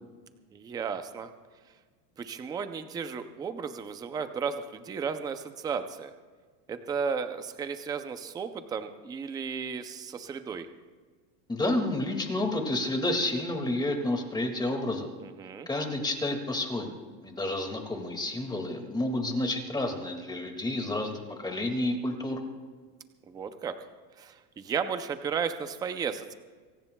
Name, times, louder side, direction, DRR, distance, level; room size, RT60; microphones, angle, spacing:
voice 1, 0.5-1.3 2.2-6.1 6.7-10.7 15.2-15.7 23.3-23.8 24.2-26.3, right 6 dB, 10° right, 9 dB, 0.4 m, -34 dB
voice 2, 11.5-15.1 15.7-16.9 17.2-22.4, left 1 dB, 10° left, 4 dB, 1.9 m, -30 dB
26.0 x 17.5 x 2.2 m, 1.5 s
supercardioid pair, 145°, 48 cm